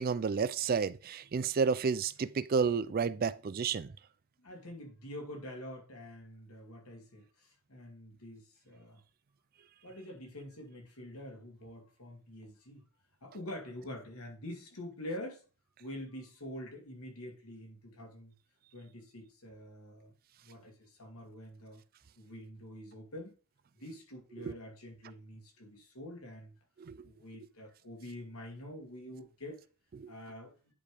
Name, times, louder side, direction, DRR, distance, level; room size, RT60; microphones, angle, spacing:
voice 1, 0.0-3.9 26.9-27.0 30.0-30.1, right 5 dB, 40° right, 0.4 m, -31 dB
voice 2, 4.4-9.0 9.8-12.8 13.2-15.4 15.8-18.3 18.7-20.1 20.4-21.8 22.2-23.4 23.8-26.5 27.0-29.6 30.1-30.6, left 1 dB, 80° left, 2.4 m, -46 dB
9.8 x 3.4 x 4.9 m
head